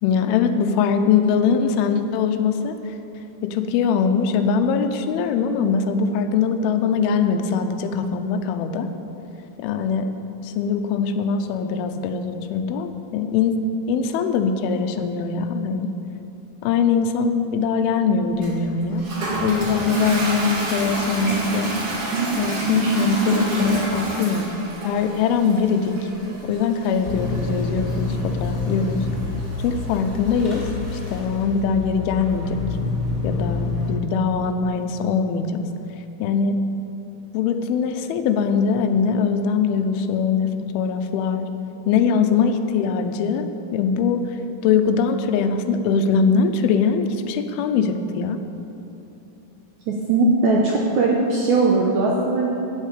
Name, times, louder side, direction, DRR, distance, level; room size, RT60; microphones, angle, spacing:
voice 1, 0.0-3.0 3.4-8.9 9.6-10.1 10.4-13.6 13.9-15.9 16.6-19.0 19.4-21.7 22.4-24.5 24.8-26.0 26.4-29.1 29.6-30.7 30.9-32.6 33.2-35.7 36.2-36.6 37.3-41.5 41.9-44.4 44.6-48.4, left 6 dB, 80° left, 7 dB, 2.4 m, -22 dB
Toilet flush, 18.4-31.2, right 2 dB, 45° right, 2.6 m, -28 dB
sound 1, 27.0-33.9, left 3 dB, 15° left, 2.3 m, -27 dB
voice 2, 49.9-52.5, right 3 dB, 85° right, -2 dB, 1.7 m, -19 dB
10.0 x 8.4 x 8.3 m, 2.9 s
omnidirectional pair, 4.7 m